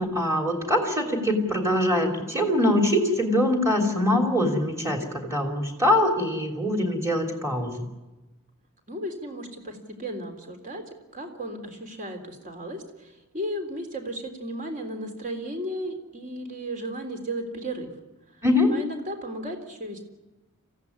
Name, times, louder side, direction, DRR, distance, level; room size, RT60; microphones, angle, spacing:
voice 1, 0.0-7.9 18.4-18.7, left 1 dB, 15° right, 2 dB, 3.3 m, -23 dB
voice 2, 8.9-10.8 11.1-17.9 18.7-20.0, right 1 dB, 35° right, 5 dB, 3.6 m, -34 dB
26.5 x 15.5 x 9.7 m, 1.1 s
head